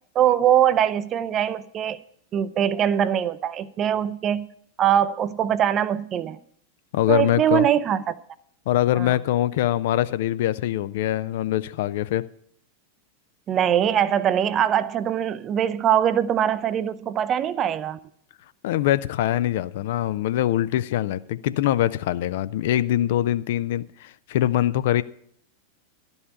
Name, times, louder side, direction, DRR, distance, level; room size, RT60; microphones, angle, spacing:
voice 1, 0.1-2.0 2.3-4.5 4.8-6.4 7.1-8.2 8.9-9.2 13.5-18.0, right 10 dB, 30° right, 0.5 m, -22 dB
voice 2, 6.9-7.7 8.7-12.3 18.6-25.0, left 13 dB, 55° left, 0.4 m, -23 dB
12.0 x 5.4 x 8.0 m
figure-of-eight pair, 90°, 0 cm